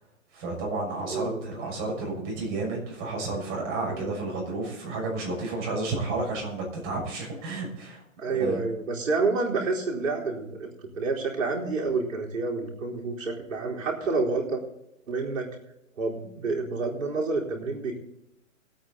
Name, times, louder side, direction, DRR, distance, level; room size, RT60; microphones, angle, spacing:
voice 1, 0.3-8.0 8.4-8.6, right 2 dB, 25° right, -1 dB, 6.3 m, -31 dB
voice 2, 1.1-1.4 3.8-4.2 8.2-14.6 15.1-15.5 16.0-18.0, right 3 dB, 70° right, -3 dB, 4.3 m, -29 dB
20.5 x 8.9 x 4.1 m, 0.84 s
hypercardioid pair, 145°, 40 cm